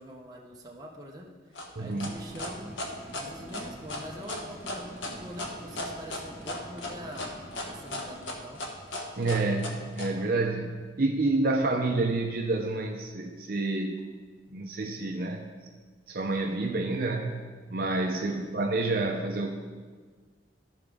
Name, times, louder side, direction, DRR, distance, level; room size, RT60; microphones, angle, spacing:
voice 1, 0.0-2.8 3.1-7.3 7.6-8.6 18.2-18.6, equal, 20° right, -1 dB, 0.9 m, -44 dB
sound 1, 1.5-10.1, left 1 dB, 80° left, 1.1 m, -36 dB
voice 2, 1.8-2.1 9.2-14.0 14.5-15.4 16.1-19.5, right 2 dB, 50° right, 1 dB, 0.6 m, -29 dB
sound 2, 2.0-12.7 13.1-13.2, right 1 dB, ahead, 1.5 m, -49 dB
14.0 x 5.0 x 3.5 m, 1.5 s
head